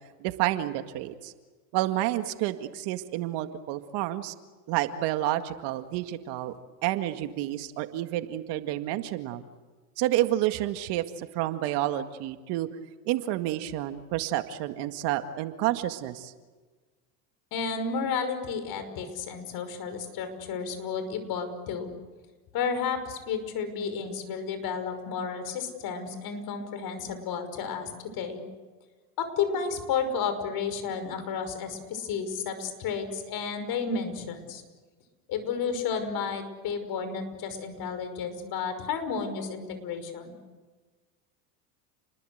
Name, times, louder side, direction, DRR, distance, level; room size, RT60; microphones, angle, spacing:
voice 1, 0.2-1.3 1.7-4.3 4.7-6.5 6.8-9.4 10.0-12.7 13.1-16.3, right 14 dB, 55° right, 8 dB, 2.0 m, -29 dB
voice 2, 17.5-21.9 22.5-28.4 29.2-34.6 35.3-40.3, left 6 dB, 50° left, 9 dB, 5.7 m, -32 dB
30.0 x 21.5 x 8.0 m, 1.3 s
hypercardioid pair, 100°, 47 cm